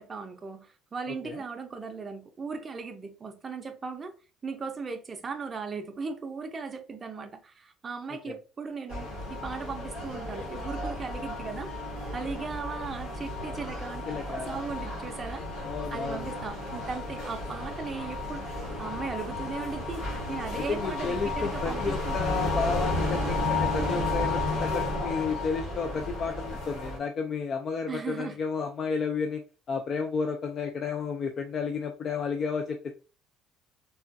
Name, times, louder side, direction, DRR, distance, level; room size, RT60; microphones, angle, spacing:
voice 1, 0.0-4.1 4.4-11.7 12.1-14.1 14.5-15.5 15.9-22.2 27.9-28.4, right 5 dB, 25° right, 0.5 m, -37 dB
sound 1, 8.9-27.0, left 2 dB, 85° left, 1.6 m, -33 dB
voice 2, 14.1-14.6 15.6-16.3 20.5-29.4 29.7-33.0, left 5 dB, 40° left, 0.3 m, -32 dB
3.3 x 2.3 x 2.5 m
cardioid pair, 135°, 0 cm